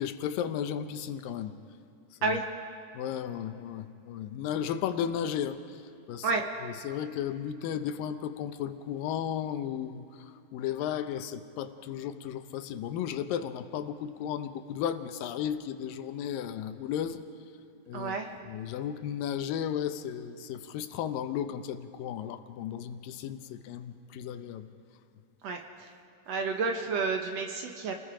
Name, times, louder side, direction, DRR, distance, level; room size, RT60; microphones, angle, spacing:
voice 1, 0.0-1.5 2.2-2.4 2.9-5.8 6.1-6.3 6.6-17.2 17.9-18.2 18.5-24.7, left 9 dB, 90° left, 10 dB, 2.6 m, -34 dB
voice 2, 17.9-18.3 25.4-25.6 26.3-28.0, right 4 dB, 60° right, 4 dB, 2.0 m, -30 dB
29.5 x 20.0 x 5.0 m, 2.7 s
omnidirectional pair, 3.9 m